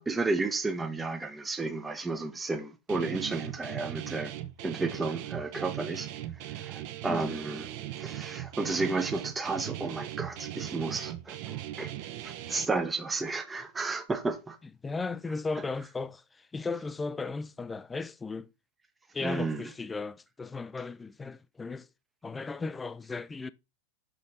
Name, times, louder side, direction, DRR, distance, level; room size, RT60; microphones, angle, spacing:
voice 1, 0.0-4.3 4.6-6.1 6.4-7.7 8.0-11.9 12.2-14.6 19.2-19.6, right 3 dB, 10° right, 0.8 m, -32 dB
Guitar, 2.9-12.7, right 13 dB, 45° right, 0.8 m, -39 dB
voice 2, 7.0-7.4 14.6-18.5 19.1-21.9 22.2-23.5, left 4 dB, 15° left, 0.4 m, -36 dB
6.2 x 5.1 x 4.0 m
figure-of-eight pair, 90°, 0 cm